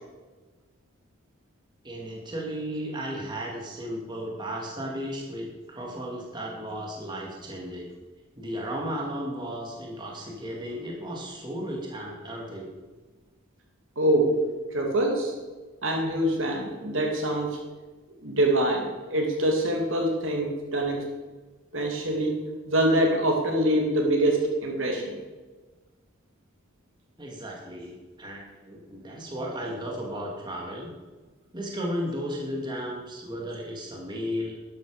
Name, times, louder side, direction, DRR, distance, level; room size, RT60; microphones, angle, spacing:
voice 1, 1.8-7.9 8.4-12.7 27.2-30.9 31.5-34.5, equal, 20° right, -2 dB, 2.4 m, -34 dB
voice 2, 14.0-14.3 14.7-15.3 15.8-17.6 18.2-21.0 21.7-22.4 22.7-25.1, right 1 dB, 70° right, 1 dB, 2.5 m, -24 dB
12.5 x 11.5 x 5.1 m, 1.3 s
head